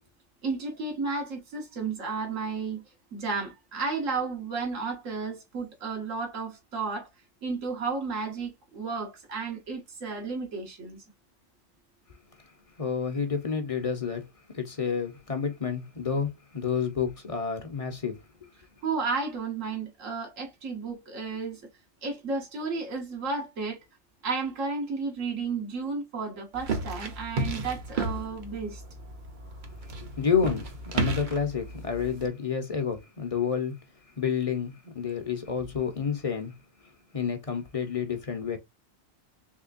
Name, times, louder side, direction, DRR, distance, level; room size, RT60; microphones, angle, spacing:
voice 1, 0.4-2.8 3.1-7.1 7.4-11.0 18.8-21.6 22.0-23.8 24.2-28.8, right 4 dB, 80° right, 1.7 m, -32 dB
voice 2, 12.8-14.2 14.5-18.2 30.2-30.7 30.9-33.7 34.2-36.6 37.1-38.6, left 6 dB, 35° left, 0.7 m, -29 dB
sound 1, 26.5-32.3, right 3 dB, 45° right, 0.8 m, -33 dB
3.6 x 3.3 x 2.5 m
omnidirectional pair, 1.3 m